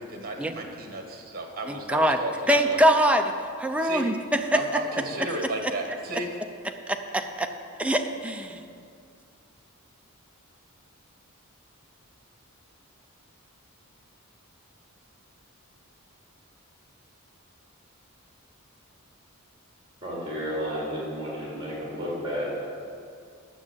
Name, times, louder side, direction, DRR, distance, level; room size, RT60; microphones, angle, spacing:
voice 1, 0.0-2.8 3.8-4.1 4.5-6.3, right 2 dB, 45° right, 3 dB, 1.7 m, -33 dB
voice 2, 1.7-2.2 2.5-3.3 3.6-4.6 6.9-7.5 7.8-8.6, right 1 dB, 5° right, 5 dB, 0.6 m, -23 dB
voice 3, 20.0-22.5, equal, 20° right, -6 dB, 3.4 m, -32 dB
9.8 x 7.3 x 8.1 m, 2.3 s
head